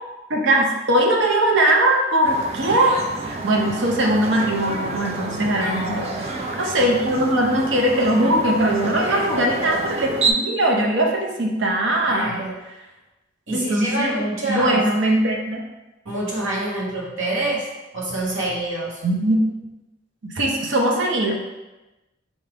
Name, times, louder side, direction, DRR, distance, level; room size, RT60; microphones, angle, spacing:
voice 1, 0.3-12.4 13.5-15.6 19.0-19.4 20.2-21.3, right 1 dB, 70° right, 0 dB, 0.7 m, -20 dB
sound 1, 2.2-10.3, right 3 dB, 30° right, 0.3 m, -29 dB
voice 2, 5.6-6.1 9.0-9.3 12.1-12.6 13.5-14.8 16.0-17.7 17.9-19.0, right 1 dB, 85° right, -4 dB, 1.2 m, -27 dB
4.6 x 2.7 x 3.4 m, 1.1 s
head